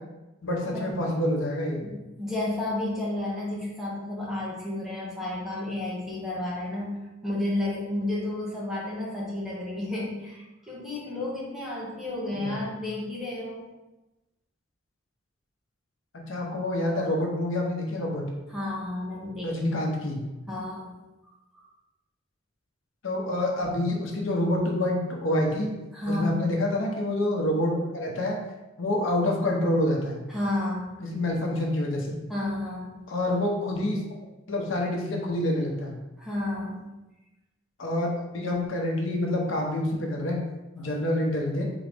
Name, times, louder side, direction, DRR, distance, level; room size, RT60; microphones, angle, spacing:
voice 1, 0.4-1.8 12.3-12.6 16.1-18.2 19.4-20.2 23.0-25.7 26.1-28.4 28.8-30.2 31.0-32.1 33.1-34.0 34.5-36.0 37.8-40.4 40.7-41.6, left 1 dB, 80° left, 0 dB, 0.9 m, -27 dB
voice 2, 1.8-13.7 18.5-19.6 20.5-21.0 25.9-26.4 30.3-31.0 32.3-33.1 36.2-36.9 40.8-40.9, left 1 dB, ahead, -6 dB, 1.0 m, -32 dB
4.0 x 3.8 x 3.4 m, 1.0 s
head